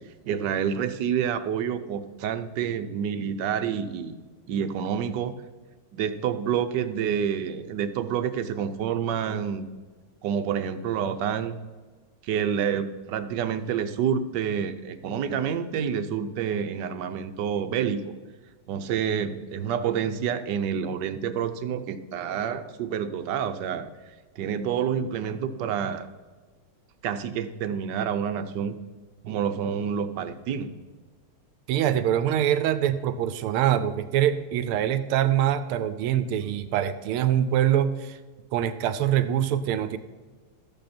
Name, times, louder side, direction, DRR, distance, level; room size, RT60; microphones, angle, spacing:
voice 1, 0.3-4.1 4.5-5.3 5.9-9.7 10.2-11.5 12.2-18.1 18.7-23.9 24.4-26.1 27.0-28.8 29.2-30.7, right 8 dB, 65° right, 10 dB, 1.2 m, -28 dB
voice 2, 31.7-38.2 38.5-40.0, right 10 dB, 85° right, 12 dB, 1.6 m, -24 dB
13.0 x 8.9 x 4.3 m, 1.4 s
omnidirectional pair, 2.3 m